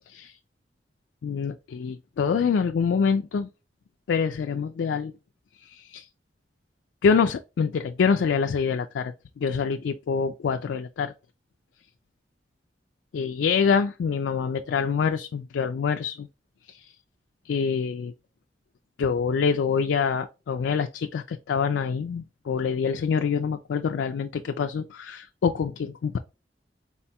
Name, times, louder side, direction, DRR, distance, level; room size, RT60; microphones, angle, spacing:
voice 1, 1.2-3.5 4.1-5.1 5.7-6.1 7.0-11.1 13.1-16.3 16.7-16.9 17.4-18.1 19.0-26.2, left 6 dB, 90° left, 0.3 m, -26 dB
4.2 x 4.0 x 2.2 m
head